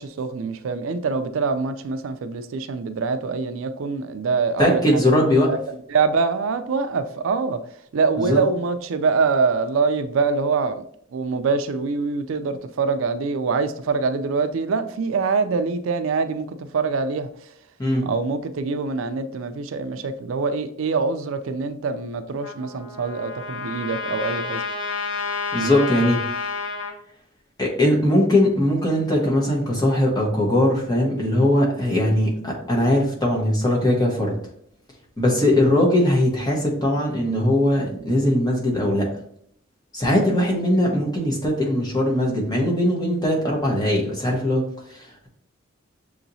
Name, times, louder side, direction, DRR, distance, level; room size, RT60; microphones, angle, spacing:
voice 1, 0.0-5.1 5.5-10.8 11.1-17.5 18.0-24.6, right 4 dB, 75° right, 9 dB, 0.4 m, -24 dB
voice 2, 4.6-5.5 8.2-8.4 17.8-18.0 25.5-26.2 27.6-34.3 35.2-39.1 39.9-44.6 44.9-45.3, left 1 dB, 20° left, -2 dB, 1.1 m, -20 dB
Trumpet, 22.4-26.9, left 5 dB, 70° left, 1.0 m, -29 dB
6.8 x 2.9 x 2.6 m, 0.66 s
head